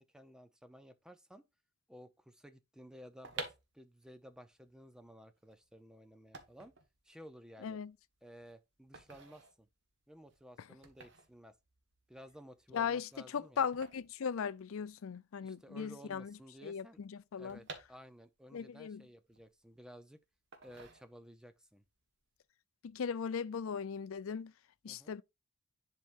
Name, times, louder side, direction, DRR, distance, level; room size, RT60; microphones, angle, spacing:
voice 1, 0.0-1.4 1.9-6.7 7.0-7.8 8.2-9.7 10.1-11.5 12.1-13.7 15.4-17.0 17.4-20.2 20.6-21.8 24.9-25.2, equal, 5° right, 0.6 m, -55 dB
sound 1, 3.0-15.1 15.4-15.5 15.7-18.5 18.9-20.0 20.5-21.5 21.9-22.2, right 3 dB, 60° right, 1.5 m, -52 dB
voice 2, 12.7-16.3 16.6-17.6 18.5-19.0 22.8-24.5 24.8-25.2, left 6 dB, 70° left, 0.4 m, -38 dB
10.5 x 4.6 x 2.5 m
head